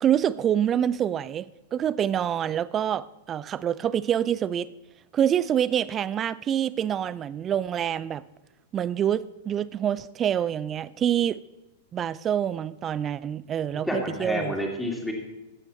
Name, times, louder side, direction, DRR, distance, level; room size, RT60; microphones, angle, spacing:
voice 1, 0.0-4.7 5.1-8.2 8.7-11.4 11.9-14.5, right 9 dB, 25° right, 0.4 m, -26 dB
voice 2, 13.7-15.1, left 1 dB, 5° left, 2.7 m, -29 dB
15.5 x 9.1 x 4.2 m
figure-of-eight pair, 95°, 0 cm